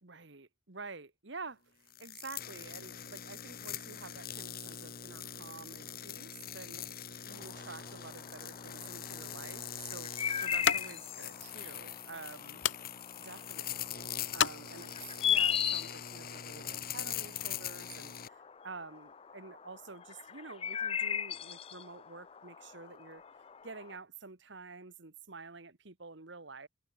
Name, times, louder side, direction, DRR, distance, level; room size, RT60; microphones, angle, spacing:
voice 1, 0.0-12.6 13.2-15.0 15.2-23.2 23.6-26.7, right 4 dB, 60° right, 1.5 m, -49 dB
sound 1, 1.9-18.3, left 9 dB, 45° left, 3.9 m, -43 dB
sound 2, 7.3-24.0, left 8 dB, 30° left, 0.4 m, -38 dB
sound 3, 9.0-15.3, left 8 dB, 65° left, 1.3 m, -38 dB
head